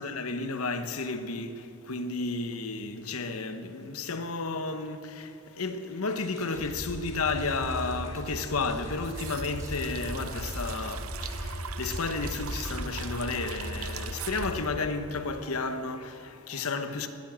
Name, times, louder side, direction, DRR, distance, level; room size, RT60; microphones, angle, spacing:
voice 1, 0.0-17.1, left 3 dB, 85° left, 1.1 m, -32 dB
sound 1, 6.1-11.3, right 2 dB, 15° right, 2.1 m, -54 dB
sound 2, 6.5-14.7, equal, 55° left, 1.9 m, -38 dB
sound 3, 8.7-15.7 16.0-16.1, right 8 dB, 75° right, 0.7 m, -42 dB
20.0 x 9.6 x 7.5 m
head